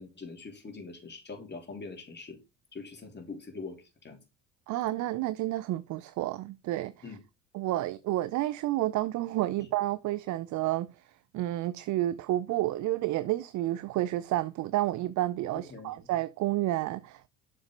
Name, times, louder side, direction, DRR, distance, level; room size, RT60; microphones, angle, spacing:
voice 1, 0.0-2.4 2.7-4.2 7.0-7.2 9.6-9.7 15.7-16.0, left 4 dB, 25° left, 3.2 m, -43 dB
voice 2, 4.7-6.9 7.5-10.9 11.3-17.3, right 15 dB, 50° right, 0.6 m, -30 dB
7.2 x 6.2 x 3.9 m
hypercardioid pair, 75°, 39 cm